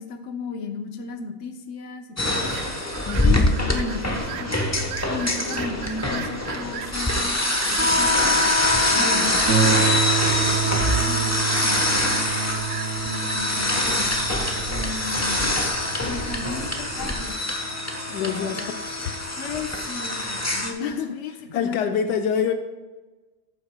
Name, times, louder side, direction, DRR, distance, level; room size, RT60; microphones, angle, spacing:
voice 1, 0.0-2.6 3.2-3.4 3.7-4.7 5.1-8.4 8.9-10.1 10.4-12.7 13.0-14.2 14.7-15.6 16.0-17.4 18.2-18.7 19.4-21.8, left 4 dB, 50° left, 4 dB, 1.1 m, -35 dB
sound 1, 2.2-20.7, left 1 dB, 15° left, 0.5 m, -24 dB
sound 2, 2.2-13.4, right 11 dB, 85° right, 1.2 m, -38 dB
voice 2, 3.1-3.5 8.9-9.4 18.1-18.6 19.0-19.1 20.8-22.5, left 7 dB, 75° left, 6 dB, 1.2 m, -27 dB
Harp, 9.5-18.7 19.5-19.6 20.1-20.2, right 8 dB, 60° right, 0.8 m, -29 dB
14.0 x 8.0 x 2.2 m, 1.2 s
omnidirectional pair, 1.9 m